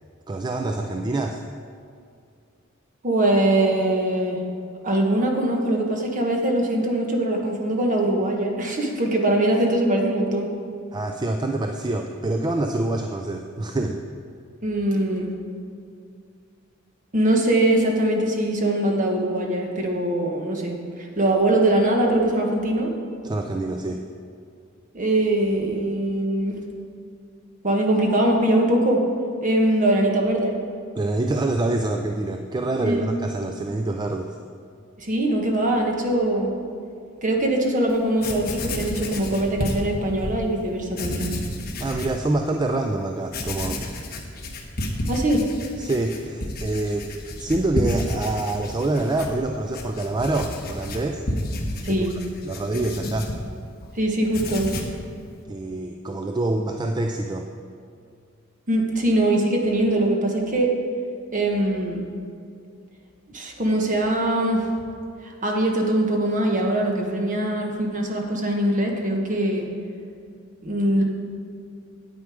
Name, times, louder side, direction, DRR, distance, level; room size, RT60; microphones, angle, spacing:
voice 1, 0.3-1.4 10.9-14.0 23.2-24.0 30.9-34.4 41.8-43.8 45.0-45.1 45.8-47.1 47.4-51.2 51.9-52.1 52.4-53.3 55.5-57.5, right 2 dB, 20° right, 4 dB, 0.4 m, -26 dB
voice 2, 3.0-4.4 4.8-10.5 14.6-15.3 17.1-22.9 24.9-26.6 27.6-29.0 29.4-30.5 32.8-33.1 35.0-36.5 37.2-41.3 45.1-45.4 51.8-52.1 54.0-54.7 58.7-60.7 61.3-62.0 63.3-64.6 65.2-69.7 70.6-71.0, right 1 dB, 40° right, 1 dB, 1.3 m, -22 dB
Writing, 37.9-38.0 38.2-40.4 40.9-42.2 42.7-42.8 43.3-53.9 54.2-55.0, left 1 dB, 45° left, 1.2 m, -31 dB
9.2 x 8.6 x 4.9 m, 2.4 s
head